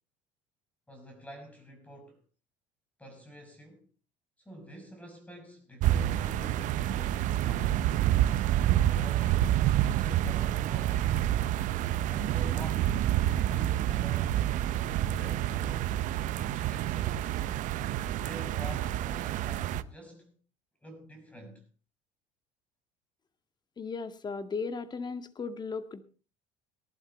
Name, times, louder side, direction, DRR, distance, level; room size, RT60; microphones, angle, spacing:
voice 1, 0.9-2.2 3.0-3.9 4.4-7.8 8.8-11.3 12.1-16.0 16.3-17.4 18.2-20.4 20.8-21.6, equal, 10° left, 5.6 m, -48 dB
sound 1, 5.8-19.8, right 12 dB, 60° right, 0.8 m, -28 dB
voice 2, 23.8-26.0, left 4 dB, 30° left, 1.8 m, -36 dB
18.5 x 11.5 x 4.3 m
supercardioid pair, 95°, 15 cm